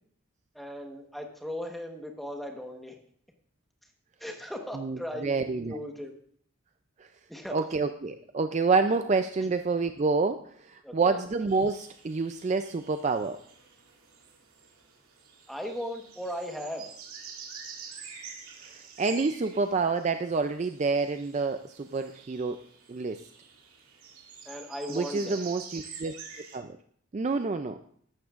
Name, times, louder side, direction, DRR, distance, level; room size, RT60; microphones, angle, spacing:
voice 1, 0.5-3.0 4.2-6.1 7.3-7.6 9.4-9.5 10.8-11.2 15.5-16.9 24.4-25.4, equal, ahead, 2 dB, 1.1 m, -37 dB
voice 2, 4.7-5.8 7.5-13.4 18.7-22.6 22.9-23.2 24.9-26.1 26.5-26.8 27.1-27.8, right 4 dB, 30° right, 8 dB, 0.3 m, -28 dB
sound 1, 11.5-26.6, right 6 dB, 85° right, 2.4 m, -47 dB
14.0 x 11.5 x 2.5 m, 0.62 s
head